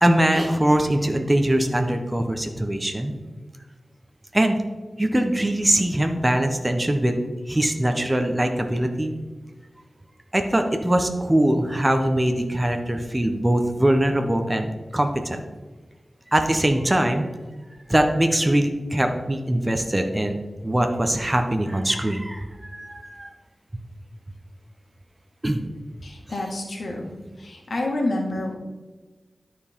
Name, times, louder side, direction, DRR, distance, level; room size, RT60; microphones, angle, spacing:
voice 1, 0.0-3.1 4.3-4.6 5.0-7.2 7.5-9.1 10.3-15.4 16.3-17.3 17.9-20.4 20.6-23.3 25.4-25.6, right 1 dB, 20° right, 5 dB, 0.9 m, -22 dB
voice 2, 26.0-27.1 27.4-28.6, left 2 dB, 70° left, 0 dB, 1.8 m, -28 dB
12.5 x 4.7 x 3.6 m, 1.3 s
cardioid pair, 45°, 0 cm